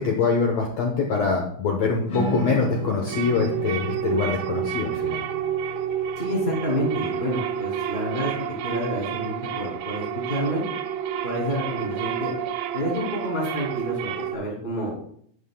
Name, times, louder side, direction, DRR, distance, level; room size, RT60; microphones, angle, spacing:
voice 1, 0.0-5.2, left 4 dB, 80° left, 1 dB, 1.4 m, -24 dB
sound 1, 2.1-8.4, right 1 dB, 45° left, 1.9 m, -35 dB
sound 2, 2.4-14.4, right 9 dB, 85° right, 2.5 m, -30 dB
voice 2, 6.2-8.3 8.6-10.6 11.2-12.3 12.7-15.0, equal, 15° left, -4 dB, 2.0 m, -28 dB
11.5 x 8.9 x 2.2 m, 0.64 s
omnidirectional pair, 4.4 m